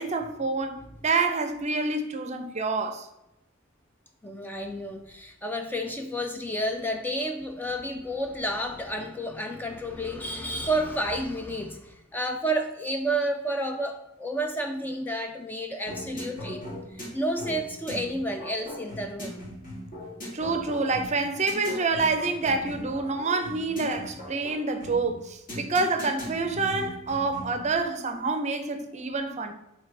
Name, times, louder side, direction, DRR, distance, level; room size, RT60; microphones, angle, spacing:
voice 1, 0.0-3.1 20.3-29.5, right 3 dB, 35° right, 0.6 m, -27 dB
voice 2, 4.2-16.7 16.9-19.5, right 1 dB, 10° left, 0.4 m, -30 dB
sound 1, 15.9-27.7, equal, 40° left, 2.1 m, -39 dB
8.7 x 3.3 x 3.3 m
head